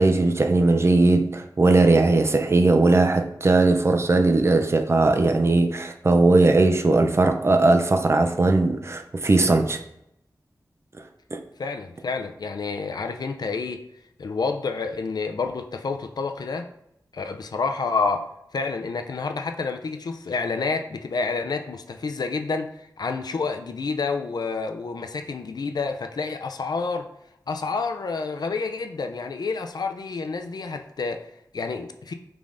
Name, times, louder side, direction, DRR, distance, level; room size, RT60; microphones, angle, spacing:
voice 1, 0.0-9.8 11.3-11.4, right 2 dB, 35° right, 0.4 m, -19 dB
voice 2, 11.6-13.8 14.2-16.7 17.1-18.2 18.5-27.1 27.5-32.1, left 4 dB, 65° left, 0.4 m, -29 dB
5.1 x 3.4 x 2.5 m
wide cardioid pair, 85°, 7 cm